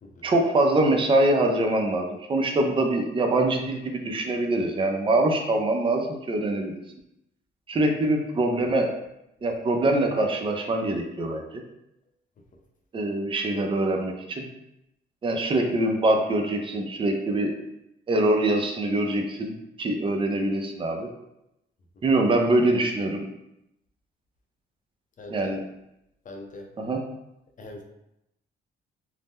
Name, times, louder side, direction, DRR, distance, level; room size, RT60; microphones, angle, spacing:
voice 1, 0.2-6.8 7.7-8.9 9.4-11.4 12.9-14.4 15.2-17.5 18.1-21.1 22.0-23.2 25.3-25.6 26.8-27.0, right 2 dB, 25° right, 3 dB, 0.5 m, -24 dB
voice 2, 25.2-25.5 26.2-26.7 27.6-27.8, left 2 dB, 40° left, 2 dB, 0.6 m, -41 dB
2.7 x 2.1 x 3.5 m, 0.85 s
cardioid pair, 90°, 20 cm